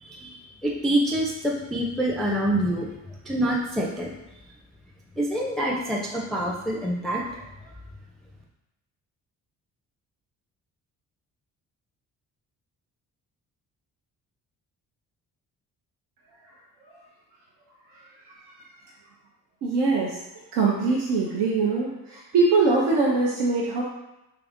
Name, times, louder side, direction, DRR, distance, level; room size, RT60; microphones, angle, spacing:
voice 1, 0.0-2.9 3.3-4.1 5.2-7.2, right 1 dB, ahead, -2 dB, 0.4 m, -26 dB
voice 2, 19.6-20.2 20.5-23.8, right 3 dB, 75° right, -3 dB, 0.6 m, -22 dB
2.8 x 2.4 x 3.5 m, 0.95 s
hypercardioid pair, 50°, 41 cm